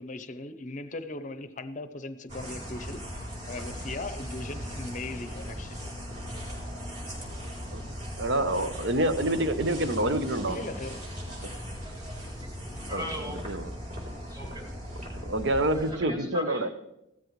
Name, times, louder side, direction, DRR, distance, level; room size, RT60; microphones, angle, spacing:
voice 1, 0.0-5.9 10.5-11.1, left 2 dB, 40° left, 0.7 m, -39 dB
sound 1, 2.3-15.9, equal, 35° right, 3.5 m, -38 dB
voice 2, 8.2-10.6 11.4-11.5 12.9-13.0 13.5-13.7 15.2-16.7, right 1 dB, 60° right, 0.8 m, -27 dB
voice 3, 11.3-12.5 12.9-13.5 14.3-14.6 15.5-16.7, left 1 dB, 20° right, 2.3 m, -40 dB
16.0 x 13.0 x 3.1 m
head